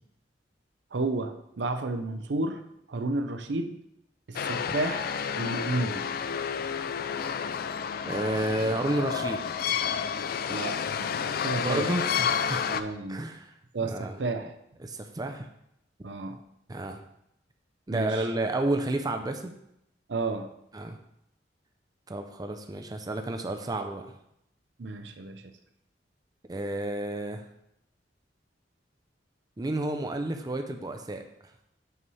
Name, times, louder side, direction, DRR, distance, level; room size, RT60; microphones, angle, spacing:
voice 1, 0.9-2.6 2.9-3.8 4.3-5.1 5.4-6.1 10.5-11.9 12.7-13.2 13.7-14.5 16.0-16.4 17.9-18.3 20.1-20.5 24.8-25.6, right 2 dB, 70° right, 7 dB, 0.6 m, -32 dB
sound 1, 4.4-12.8, left 7 dB, 55° left, 0.4 m, -30 dB
voice 2, 8.1-9.4 11.6-12.7 13.1-13.5 13.8-14.2 14.8-15.5 16.7-17.0 17.9-19.5 20.7-21.0 22.1-24.1 26.5-27.4 29.6-31.2, right 2 dB, 20° right, 5 dB, 0.5 m, -31 dB
7.9 x 3.2 x 5.5 m, 0.78 s
head